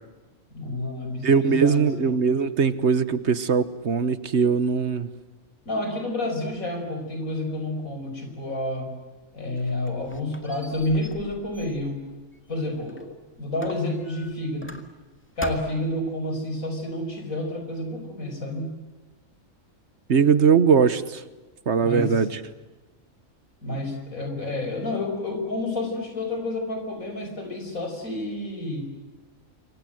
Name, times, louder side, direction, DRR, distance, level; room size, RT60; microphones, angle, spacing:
voice 1, 0.5-2.1 5.7-9.0 9.3-12.1 12.5-13.1 13.4-14.8 15.4-18.7 21.8-22.2 23.6-28.9, left 1 dB, 85° left, 5 dB, 5.5 m, -29 dB
voice 2, 1.2-5.1 20.1-21.2 21.7-22.3, right 6 dB, 55° right, 14 dB, 1.3 m, -20 dB
Squeak, 9.3-13.1 13.6-15.1 15.4-16.0, left 1 dB, 10° left, 1.9 m, -42 dB
28.0 x 23.5 x 7.8 m, 1.2 s
omnidirectional pair, 1.4 m